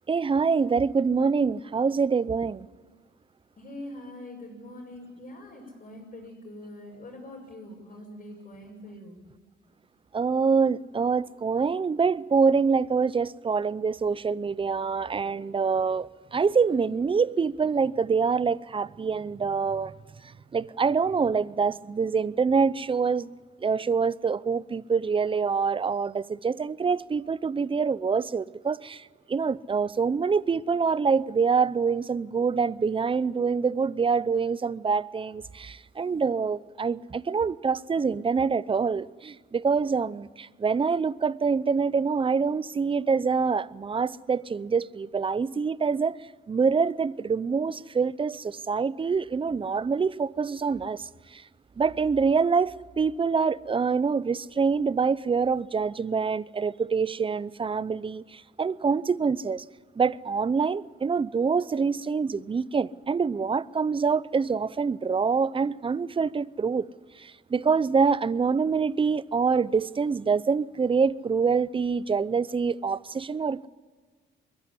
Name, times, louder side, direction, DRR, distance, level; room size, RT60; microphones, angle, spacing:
voice 1, 0.1-2.7 10.1-19.9 20.2-23.3 23.6-46.2 46.5-51.4 51.8-59.6 60.0-66.9 67.2-73.7, right 5 dB, 25° right, 0.6 m, -25 dB
voice 2, 3.6-9.2, left 1 dB, 40° left, 6.1 m, -43 dB
22.5 x 15.5 x 9.9 m
cardioid pair, 90°, 20 cm